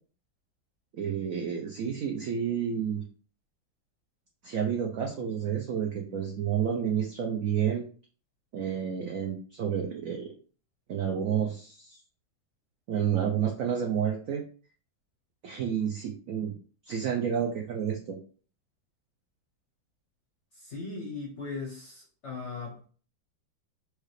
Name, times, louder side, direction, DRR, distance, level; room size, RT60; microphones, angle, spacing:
voice 1, 0.9-3.0 4.4-7.8 8.5-10.3 10.9-12.0 12.9-14.4 15.4-16.5 16.9-18.2, right 8 dB, 85° right, 0.7 m, -30 dB
voice 2, 20.5-22.9, left 4 dB, 60° left, 0.7 m, -38 dB
4.7 x 2.3 x 3.1 m
omnidirectional pair, 2.1 m